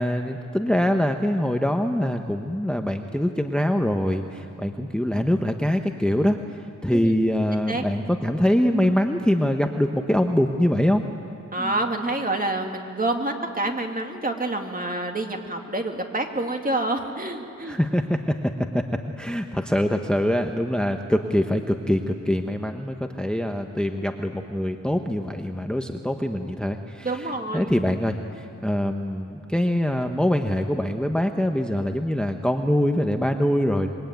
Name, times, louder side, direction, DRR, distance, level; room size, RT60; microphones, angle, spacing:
voice 1, 0.0-11.0 11.6-11.7 17.6-18.3 18.7-18.8 19.2-33.9, equal, 5° left, 5 dB, 0.9 m, -24 dB
voice 2, 11.5-17.8 27.0-27.7, right 2 dB, 30° right, 3 dB, 2.2 m, -27 dB
25.5 x 22.5 x 9.2 m, 2.6 s
wide cardioid pair, 110°, 29 cm